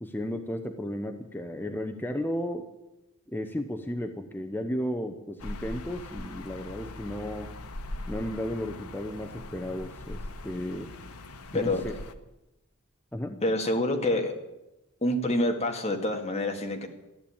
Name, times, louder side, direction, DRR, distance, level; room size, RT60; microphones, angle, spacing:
voice 1, 0.0-2.7 3.3-7.5 8.1-10.9 11.5-11.9 13.1-13.4, equal, 10° left, 5 dB, 0.7 m, -34 dB
sound 1, 5.4-12.1, left 2 dB, 80° left, 1.1 m, -41 dB
voice 2, 13.4-14.3 15.0-16.9, left 1 dB, 30° left, 3 dB, 1.9 m, -27 dB
14.5 x 10.5 x 8.6 m, 0.97 s
head